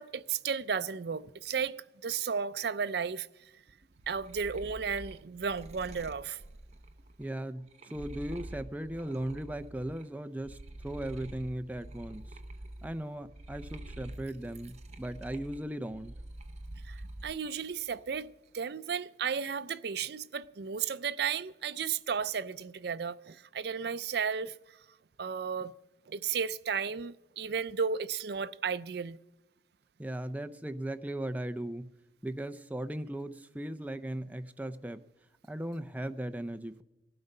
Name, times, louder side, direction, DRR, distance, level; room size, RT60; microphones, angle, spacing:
voice 1, 0.0-1.8 2.0-3.3 4.1-6.4 16.8-24.8 25.2-25.7 26.1-29.2, right 6 dB, 60° right, 0.5 m, -34 dB
sound 1, 3.8-10.0 10.4-17.4 17.8-18.4, right 1 dB, 35° right, 0.8 m, -47 dB
voice 2, 7.2-10.6 10.8-12.2 12.8-16.1 30.0-31.9 32.2-35.0 35.5-36.8, right 1 dB, 10° right, 0.5 m, -37 dB
19.0 x 12.0 x 5.4 m
head